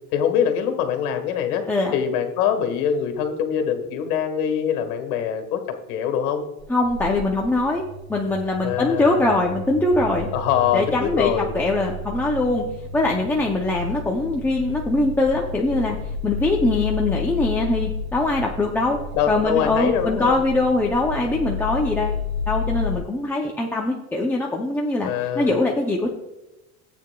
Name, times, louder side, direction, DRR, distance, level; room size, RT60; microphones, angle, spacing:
voice 1, 0.1-1.6 1.9-5.6 5.9-6.4 8.6-9.2 10.3-11.5 19.1-20.4 25.0-25.6, left 8 dB, 80° left, 6 dB, 1.7 m, -23 dB
sound 1, 6.6-23.0, left 4 dB, 30° left, 1.6 m, -31 dB
voice 2, 6.7-7.8 8.1-10.3 10.7-12.6 12.9-16.0 16.2-19.0 19.3-22.2 22.5-26.1, left 2 dB, 5° left, -2 dB, 0.4 m, -22 dB
14.0 x 8.5 x 2.2 m, 1.0 s
supercardioid pair, 145°, 44 cm